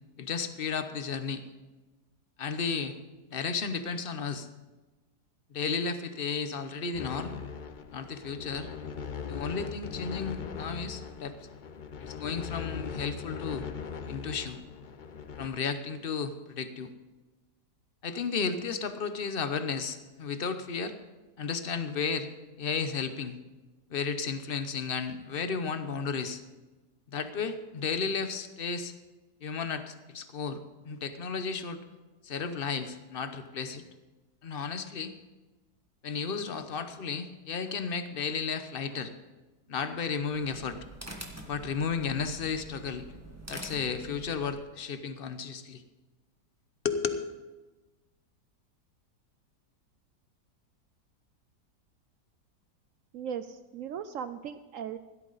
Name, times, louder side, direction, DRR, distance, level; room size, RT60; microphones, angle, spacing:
voice 1, 0.2-1.4 2.4-3.0 3.3-4.5 5.5-7.3 7.9-8.7 9.3-11.3 12.0-13.7 14.1-14.6 15.4-16.9 18.0-20.9 21.4-22.3 22.6-23.4 23.9-26.4 27.1-28.9 29.4-31.8 32.2-33.8 34.4-35.1 36.0-39.1 39.7-40.8 41.5-43.1 43.5-45.8 46.8-47.2, left 5 dB, 45° left, 9 dB, 0.9 m, -33 dB
sound 1, 6.9-15.5, left 6 dB, 70° left, 0.4 m, -40 dB
sound 2, 40.2-44.6, right 1 dB, 10° right, 1.4 m, -46 dB
voice 2, 53.1-55.0, right 8 dB, 70° right, 11 dB, 0.8 m, -38 dB
16.5 x 12.5 x 4.0 m, 1.2 s
omnidirectional pair, 1.8 m